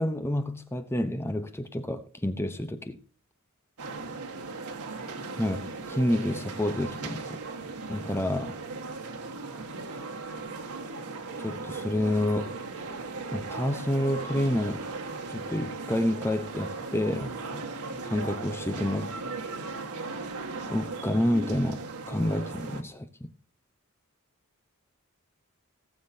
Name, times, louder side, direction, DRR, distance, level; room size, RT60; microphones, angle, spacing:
voice 1, 0.0-3.0 5.4-7.4 7.9-8.6 11.4-12.6 13.3-14.9 15.3-17.7 18.0-19.1 20.7-23.3, left 1 dB, 10° left, 0.8 m, -29 dB
sound 1, 3.8-22.8, right 3 dB, 90° right, 1.6 m, -37 dB
18.5 x 7.3 x 2.7 m
head